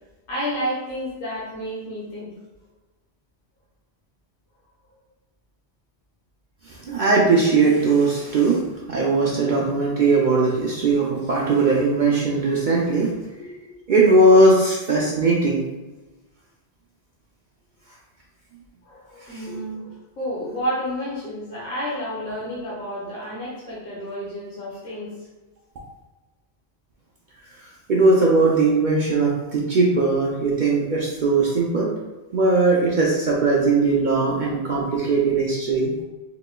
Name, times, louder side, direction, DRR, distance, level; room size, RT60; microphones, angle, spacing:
voice 1, 0.3-2.3 13.4-13.7 18.8-25.1, equal, 55° left, -7 dB, 1.1 m, -30 dB
voice 2, 6.6-8.6 8.9-13.1 13.9-15.6 19.3-19.4 27.6-31.9 32.3-35.9, right 3 dB, 55° right, -4 dB, 0.6 m, -19 dB
3.9 x 2.9 x 2.2 m, 1.2 s
omnidirectional pair, 1.1 m